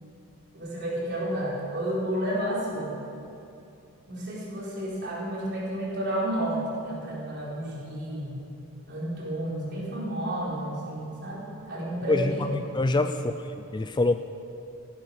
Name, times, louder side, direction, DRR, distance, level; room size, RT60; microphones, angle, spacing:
voice 1, 0.5-2.9 4.1-8.4 8.9-12.5 13.1-13.2, right 1 dB, 50° right, -6 dB, 4.4 m, -31 dB
voice 2, 12.1-12.5 12.7-13.3 13.7-14.1, left 2 dB, 20° left, 9 dB, 0.3 m, -24 dB
15.0 x 11.5 x 6.5 m, 2.7 s
head